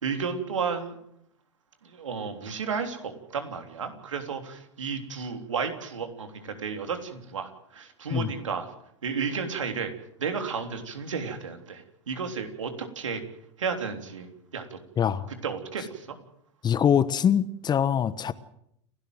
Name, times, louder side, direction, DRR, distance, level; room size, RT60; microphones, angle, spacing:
voice 1, 0.0-1.0 1.8-8.7 9.0-9.9 10.2-13.2 13.6-14.8 15.3-16.1, right 5 dB, 80° right, 3.5 m, -33 dB
voice 2, 16.6-18.3, left 8 dB, 25° left, 1.2 m, -23 dB
29.5 x 12.5 x 7.9 m
hypercardioid pair, 95°, 16 cm